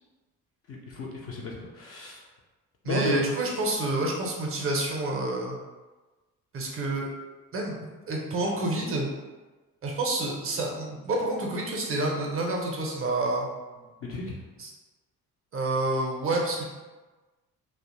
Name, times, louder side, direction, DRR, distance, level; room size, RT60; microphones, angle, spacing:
voice 1, 0.7-2.2 2.8-3.2 14.0-14.4, left 3 dB, 30° left, -3 dB, 0.4 m, -33 dB
voice 2, 2.8-5.6 6.5-7.1 7.5-7.8 8.1-9.1 9.8-13.5 14.6-14.7 15.5-16.7, right 2 dB, 30° right, 0 dB, 0.5 m, -28 dB
2.6 x 2.1 x 2.5 m, 1.2 s
figure-of-eight pair, 45°, 46 cm